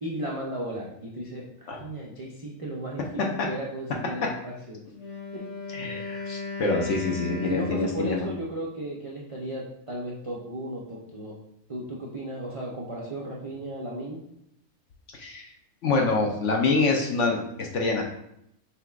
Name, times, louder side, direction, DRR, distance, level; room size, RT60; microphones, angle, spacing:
voice 1, 0.0-4.8 5.3-5.4 7.5-11.4 11.7-14.2, right 1 dB, 60° right, -4 dB, 0.3 m, -35 dB
Wind instrument woodwind instrument, 4.9-8.4, left 4 dB, 80° left, 1.6 m, -36 dB
voice 2, 5.7-8.3 15.1-15.4 15.8-18.0, left 3 dB, 60° left, 1 dB, 0.9 m, -26 dB
5.7 x 3.7 x 2.4 m, 0.76 s
omnidirectional pair, 1.6 m